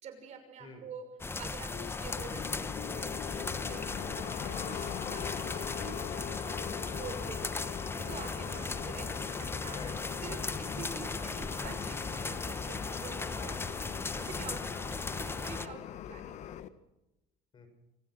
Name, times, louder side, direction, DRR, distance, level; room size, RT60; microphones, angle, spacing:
voice 1, 0.0-1.1 1.4-9.8 10.2-13.8 14.1-14.6 15.2-16.4, right 5 dB, 55° right, 7 dB, 6.3 m, -47 dB
sound 1, 1.2-15.7, left 3 dB, 15° left, 1.1 m, -37 dB
sound 2, 1.7-16.7, left 10 dB, 55° left, 1.5 m, -42 dB
voice 2, 9.7-10.4 13.4-14.1 14.5-14.7 17.5-17.7, left 4 dB, 35° left, 7 dB, 6.8 m, -50 dB
25.5 x 16.5 x 6.3 m, 0.95 s
supercardioid pair, 105°, 14 cm